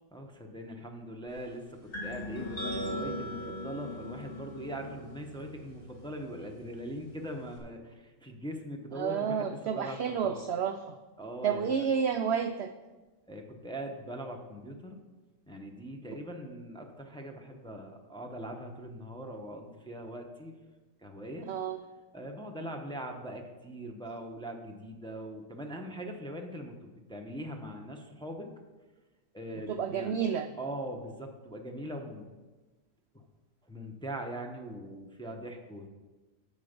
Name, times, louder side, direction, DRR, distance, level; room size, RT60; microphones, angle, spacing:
voice 1, 0.1-10.4 11.2-11.8 13.3-15.0 15.5-20.5 21.0-21.5 22.1-28.5 29.3-30.1 30.6-32.3 33.1-33.2 33.6-35.9, right 1 dB, 5° left, 2 dB, 0.7 m, -41 dB
sound 1, 1.9-7.6, left 1 dB, 35° left, 2.0 m, -40 dB
voice 2, 8.9-11.0 11.4-12.7 21.5-21.8 29.7-30.5, right 7 dB, 75° right, 8 dB, 0.6 m, -30 dB
10.5 x 7.2 x 5.2 m, 1.2 s
omnidirectional pair, 1.6 m